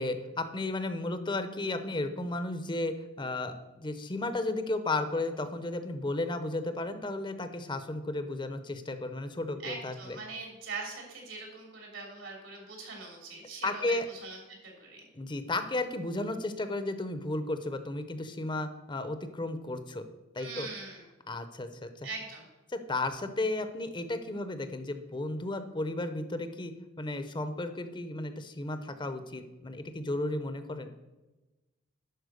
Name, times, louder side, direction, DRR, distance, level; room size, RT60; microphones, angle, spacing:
voice 1, 0.0-10.2 13.6-14.1 15.2-20.0 20.3-20.7 21.3-22.1 22.7-26.7 27.0-30.9, left 2 dB, 25° left, 9 dB, 0.7 m, -34 dB
voice 2, 9.6-14.4 14.6-15.0 20.4-21.0 22.0-22.4, right 3 dB, 80° right, 0 dB, 3.2 m, -42 dB
11.0 x 4.5 x 6.6 m, 1.1 s
head